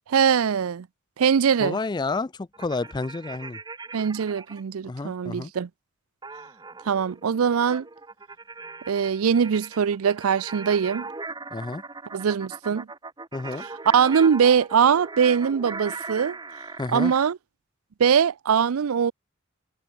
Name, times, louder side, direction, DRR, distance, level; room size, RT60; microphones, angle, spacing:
voice 1, 0.1-0.9 1.2-1.8 3.9-5.7 6.9-7.9 8.9-11.1 12.1-12.9 13.9-16.4 16.9-17.4 18.0-19.1, right 7 dB, 85° right, 0.5 m, -22 dB
voice 2, 1.6-3.6 4.8-5.5 11.5-11.8 13.3-13.7 16.8-17.1, left 3 dB, 20° left, 0.4 m, -30 dB
sound 1, 2.5-4.6 6.2-17.3, right 3 dB, 20° right, 1.1 m, -39 dB
head